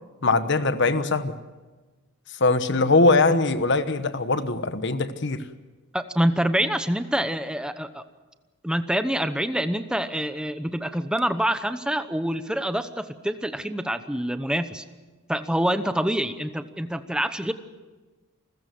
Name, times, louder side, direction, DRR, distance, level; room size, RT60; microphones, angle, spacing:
voice 1, 0.2-1.3 2.4-5.4, left 3 dB, 60° left, 11 dB, 1.2 m, -21 dB
voice 2, 5.9-8.0 8.6-14.8 15.3-17.5, right 1 dB, 5° right, 10 dB, 0.9 m, -26 dB
28.0 x 15.0 x 7.8 m, 1.3 s
head